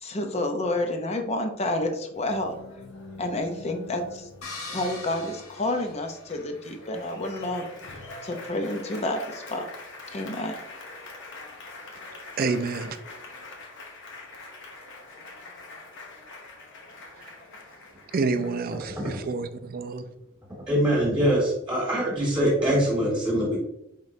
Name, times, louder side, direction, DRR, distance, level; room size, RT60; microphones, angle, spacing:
voice 1, 0.0-2.6 3.2-4.3 4.7-7.7 8.2-9.6 10.1-10.5, left 1 dB, 30° left, 0.6 m, -29 dB
Applause, 2.1-19.1, left 3 dB, 60° left, 0.9 m, -44 dB
sound 1, 4.4-6.6, left 3 dB, 90° left, 1.5 m, -41 dB
voice 2, 12.4-13.0 17.2-17.3 18.1-20.1, right 4 dB, 45° right, 0.4 m, -28 dB
voice 3, 20.7-23.6, equal, 5° right, 1.6 m, -23 dB
5.1 x 3.9 x 2.6 m
head